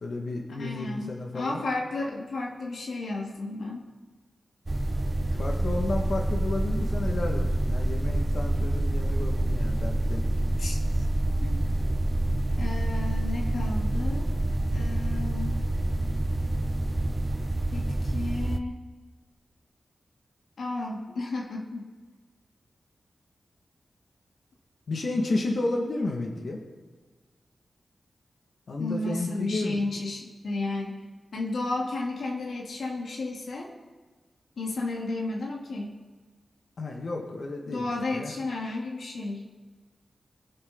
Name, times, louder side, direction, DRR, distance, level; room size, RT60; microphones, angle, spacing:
voice 1, 0.0-1.6 5.3-10.2 24.9-26.6 28.7-29.8 36.8-38.3, left 2 dB, 65° left, 1 dB, 2.0 m, -32 dB
voice 2, 0.6-3.9 10.6-11.0 11.4-11.6 12.6-14.4 14.7-15.7 17.7-18.8 20.6-21.9 28.8-31.0 31.3-33.7 34.6-36.0 37.7-39.5, left 2 dB, 90° left, -1 dB, 1.9 m, -33 dB
sound 1, 4.7-18.6, right 1 dB, 20° right, 0.7 m, -27 dB
22.5 x 7.8 x 4.0 m, 1.4 s
wide cardioid pair, 110°, 0 cm